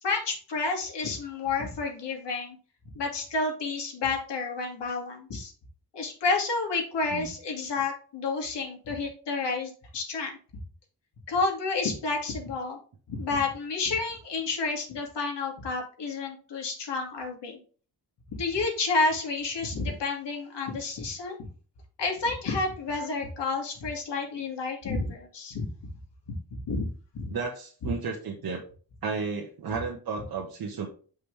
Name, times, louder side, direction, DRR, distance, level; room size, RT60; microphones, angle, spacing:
voice 1, 0.0-2.6 2.9-5.5 5.9-10.3 11.3-12.8 13.1-17.6 18.4-21.4 22.0-25.7 26.5-26.9 27.1-27.3 27.8-27.9, left 3 dB, 90° left, 1 dB, 2.4 m, -30 dB
voice 2, 27.3-28.6 29.0-30.9, right 5 dB, 60° right, -1 dB, 1.4 m, -33 dB
7.4 x 5.4 x 3.4 m, 0.39 s
wide cardioid pair, 145°, 41 cm